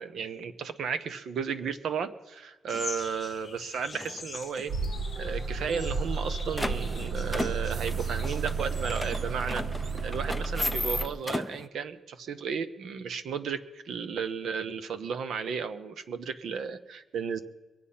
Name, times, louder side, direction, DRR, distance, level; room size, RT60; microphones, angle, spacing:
voice 1, 0.0-4.7 5.2-9.6 10.0-17.4, right 6 dB, 80° right, 12 dB, 1.0 m, -34 dB
sound 1, 2.7-9.1, left 4 dB, 30° left, 1.0 m, -44 dB
sound 2, 2.7-2.8 3.3-3.6 3.9-4.8 5.1-5.2 5.4-5.5 6.0-11.7, left 1 dB, 5° left, 0.6 m, -35 dB
sound 3, 4.7-11.1, right 4 dB, 50° right, 0.7 m, -32 dB
23.0 x 8.6 x 5.6 m, 1.2 s
wide cardioid pair, 130°, 0 cm